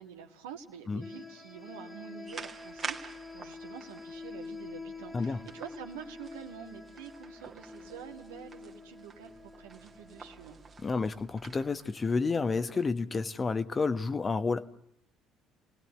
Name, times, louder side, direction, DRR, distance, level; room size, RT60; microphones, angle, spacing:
voice 1, 0.0-10.6, right 8 dB, 75° right, 4 dB, 1.9 m, -47 dB
sound 1, 1.0-11.5, left 3 dB, 10° left, 1.8 m, -47 dB
sound 2, 2.3-12.9, right 5 dB, 35° right, 2.1 m, -48 dB
voice 2, 10.8-14.6, left 4 dB, 30° left, 12 dB, 1.3 m, -30 dB
29.5 x 19.0 x 7.9 m, 0.79 s
figure-of-eight pair, 55°, 0 cm